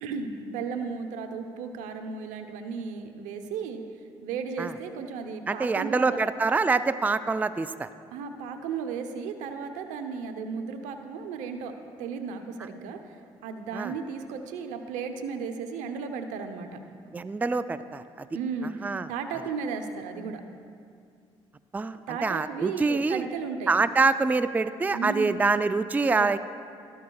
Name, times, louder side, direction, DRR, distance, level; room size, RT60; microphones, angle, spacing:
voice 1, 0.0-3.8 4.2-6.2 8.1-11.7 12.0-16.8 18.3-20.4 22.1-23.7 24.9-25.4 26.2-26.4, right 5 dB, 80° right, 6 dB, 0.8 m, -35 dB
voice 2, 5.5-7.9 13.7-13.9 17.1-18.3 18.8-19.1 21.7-23.2 23.7-26.4, right 4 dB, 15° right, 13 dB, 0.3 m, -25 dB
13.0 x 13.0 x 2.3 m, 2.3 s
supercardioid pair, 65°, 13 cm